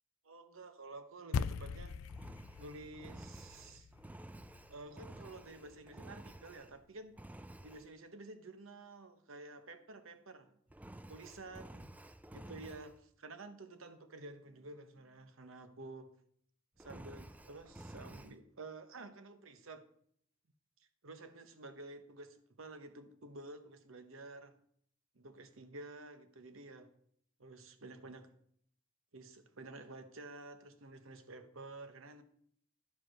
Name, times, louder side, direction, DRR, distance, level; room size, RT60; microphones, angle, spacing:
voice 1, 0.2-2.0 2.6-3.9 4.7-7.2 7.6-10.6 11.1-11.9 12.3-16.1 16.8-19.9 21.0-24.6 25.1-26.9 27.4-28.3 29.1-32.2, right 2 dB, 70° right, 1.0 m, -51 dB
sound 1, 1.3-5.9, left 5 dB, 85° left, 0.4 m, -42 dB
Engine, 2.1-6.8 7.2-7.9 10.7-13.0 16.8-18.4, right 1 dB, 5° right, 0.3 m, -52 dB
10.5 x 5.2 x 6.0 m
head